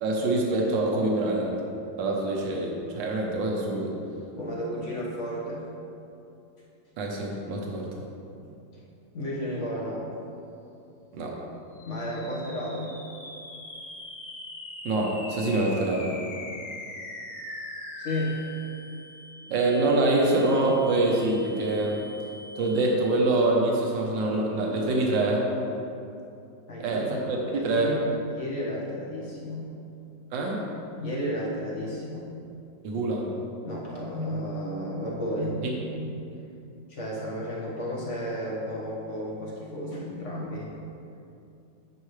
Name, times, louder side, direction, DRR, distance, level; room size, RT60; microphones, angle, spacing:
voice 1, 0.0-1.6 2.0-4.0 7.0-8.0 11.1-11.4 14.8-16.1 19.5-22.0 22.6-25.4 26.8-28.0 30.3-30.6 32.8-33.3, right 2 dB, 80° right, -1 dB, 1.7 m, -25 dB
voice 2, 4.3-5.7 8.4-8.5 9.1-10.1 11.9-13.0 18.0-18.5 26.7-27.1 27.5-29.7 31.0-32.4 33.6-35.6 35.9-36.2 36.9-40.8, equal, 45° left, -5 dB, 1.6 m, -33 dB
sound 1, 11.7-23.3, left 2 dB, 85° left, 1.9 m, -42 dB
10.0 x 6.1 x 3.2 m, 2.7 s
omnidirectional pair, 2.0 m